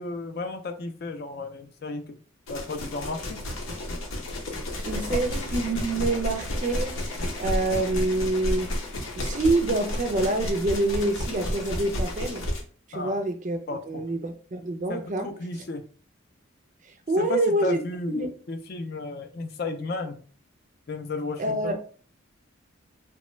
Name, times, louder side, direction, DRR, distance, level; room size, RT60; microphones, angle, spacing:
voice 1, 0.0-2.2 2.5-3.4 6.1-6.2 12.9-13.2 13.7-14.1 14.9-15.8 17.2-20.2 20.9-21.8, left 3 dB, 50° left, 7 dB, 0.4 m, -33 dB
sound 1, 2.5-12.6, left 1 dB, 85° left, 0.7 m, -31 dB
voice 2, 4.8-8.7 9.2-12.5 12.9-13.6 13.9-15.3 16.9-17.8 18.2-18.3 21.4-21.8, right 2 dB, 35° right, 6 dB, 0.4 m, -26 dB
3.0 x 2.2 x 3.0 m, 0.42 s
head